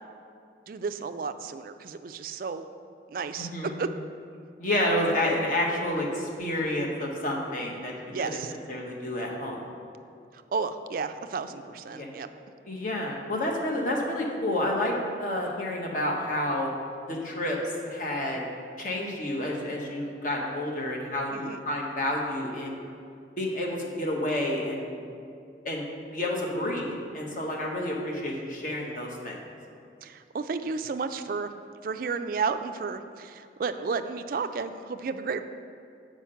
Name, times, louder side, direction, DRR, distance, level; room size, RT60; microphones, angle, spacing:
voice 1, 0.7-2.7 3.1-3.5 3.8-3.9 8.1-8.5 10.3-12.3 21.3-21.6 30.0-31.5 31.8-35.4, right 5 dB, 50° right, 9 dB, 0.3 m, -32 dB
voice 2, 3.4-3.8 4.6-7.9 8.7-9.7 11.9-12.1 12.6-16.7 17.0-17.6 17.8-18.4 18.8-22.8 23.4-25.0 25.6-25.8 26.1-29.4, left 1 dB, 45° left, -1 dB, 1.2 m, -29 dB
7.2 x 5.1 x 5.6 m, 2.4 s
head